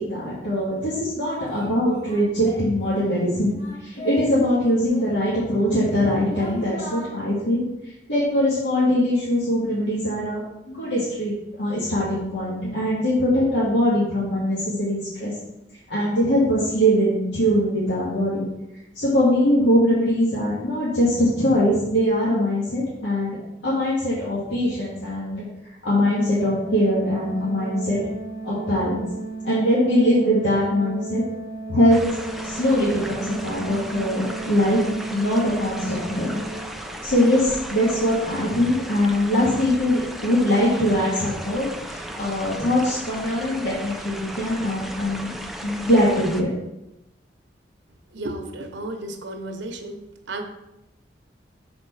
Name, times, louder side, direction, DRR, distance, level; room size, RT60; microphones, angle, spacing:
voice 1, 0.0-11.3 11.6-15.3 15.9-18.5 18.9-23.4 23.6-25.5 25.8-28.0 28.4-29.1 29.4-31.2 31.7-32.1 32.4-36.4 37.0-45.3 45.6-46.5, equal, 75° left, -8 dB, 1.9 m, -22 dB
Singing, 1.2-4.4 4.7-7.1, left 2 dB, 45° left, 2.8 m, -38 dB
Organ, 26.2-37.1, right 3 dB, 20° right, 1.1 m, -35 dB
sound 1, 31.9-46.4, equal, ahead, 0.5 m, -36 dB
voice 2, 48.1-50.0 50.3-50.4, right 1 dB, 85° right, 5 dB, 1.0 m, -33 dB
6.4 x 4.4 x 5.7 m, 0.90 s
head